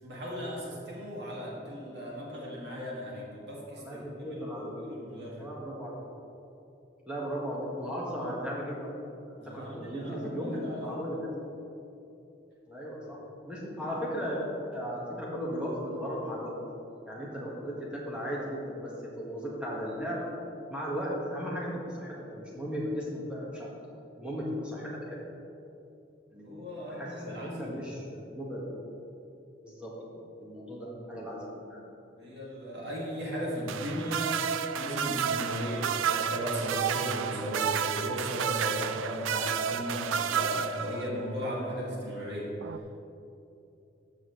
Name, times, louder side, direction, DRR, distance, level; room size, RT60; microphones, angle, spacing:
voice 1, 0.0-4.0 4.3-5.5 9.4-11.0 13.8-13.9 26.4-27.8 32.2-34.4 34.7-42.5, equal, 60° right, -5 dB, 2.2 m, -36 dB
voice 2, 1.2-1.6 3.8-4.8 5.4-5.9 7.0-8.9 9.5-11.3 12.7-13.2 13.4-14.4 14.7-16.5 17.1-18.9 19.2-20.3 20.7-23.7 24.1-25.3 26.3-28.9 29.6-29.9 30.4-31.8, equal, 5° right, -6 dB, 1.7 m, -36 dB
sound 1, 33.7-41.3 42.6-42.8, right 8 dB, 90° right, 0.4 m, -31 dB
13.5 x 6.6 x 3.3 m, 2.8 s
head